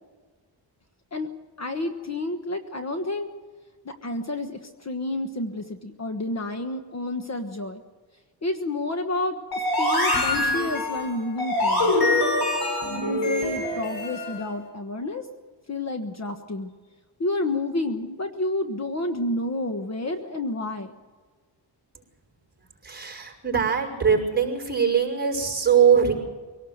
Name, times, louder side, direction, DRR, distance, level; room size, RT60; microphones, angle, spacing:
voice 1, 1.6-3.3 3.8-7.8 8.4-12.0 12.9-15.3 15.7-16.7 17.2-21.0, left 2 dB, 35° left, 6 dB, 1.3 m, -30 dB
sound 1, 9.5-14.4, left 1 dB, 55° left, 7.5 m, -24 dB
voice 2, 22.8-26.1, right 7 dB, 20° right, 1 dB, 5.5 m, -21 dB
24.5 x 18.0 x 8.0 m, 1.4 s
wide cardioid pair, 160°, 45 cm